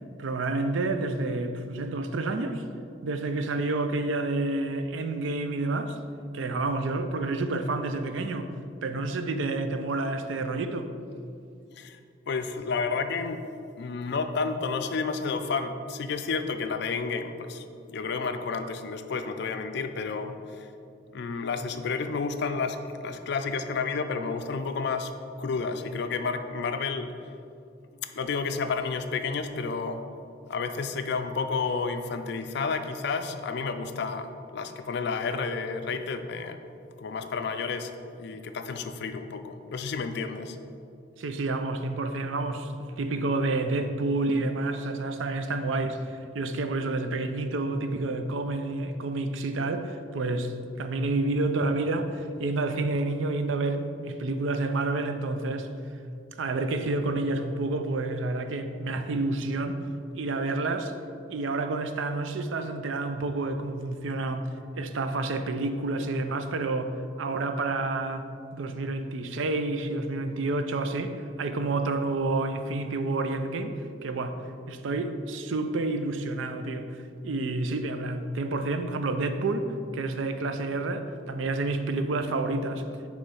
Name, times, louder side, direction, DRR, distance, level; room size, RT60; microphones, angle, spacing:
voice 1, 0.2-2.6 3.0-6.0 6.3-8.5 8.8-10.9 41.2-55.7 56.4-59.8 60.1-60.9 61.3-64.5 64.8-73.7 74.0-74.4 74.7-82.9, right 2 dB, 75° right, 0.4 m, -29 dB
voice 2, 12.3-13.5 13.8-20.7 21.1-25.1 25.4-27.2 28.1-30.0 30.5-36.6 37.0-40.6, left 4 dB, 55° left, 0.4 m, -31 dB
6.9 x 3.2 x 5.4 m
head